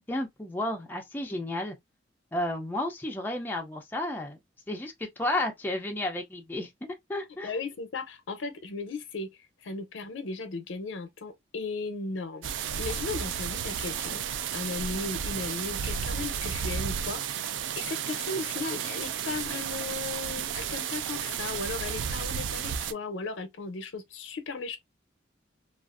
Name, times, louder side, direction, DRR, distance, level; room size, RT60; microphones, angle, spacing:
voice 1, 0.1-1.7 2.3-4.4 4.7-7.5, left 1 dB, 10° left, 0.4 m, -32 dB
voice 2, 7.4-9.3 9.6-12.5 12.8-14.2 14.5-24.8, left 3 dB, 80° left, 0.6 m, -36 dB
sound 1, 12.4-22.9, right 8 dB, 70° right, 0.3 m, -33 dB
2.4 x 2.4 x 2.3 m
head